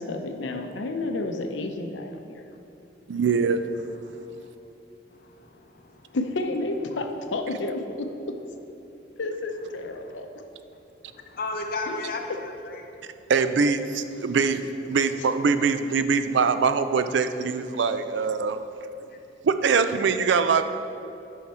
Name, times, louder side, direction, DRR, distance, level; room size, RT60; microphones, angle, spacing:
voice 1, 0.0-2.4 6.1-8.4 9.2-10.4 11.9-12.0, left 2 dB, 85° left, 6 dB, 0.7 m, -31 dB
voice 2, 3.1-3.6 13.3-18.6 19.4-20.6, right 5 dB, 70° right, 10 dB, 0.4 m, -23 dB
voice 3, 4.0-4.5 5.1-6.2 9.7-10.2 11.0-13.3 19.1-19.2, left 3 dB, 55° left, 3 dB, 0.8 m, -36 dB
9.5 x 5.7 x 4.3 m, 2.8 s
head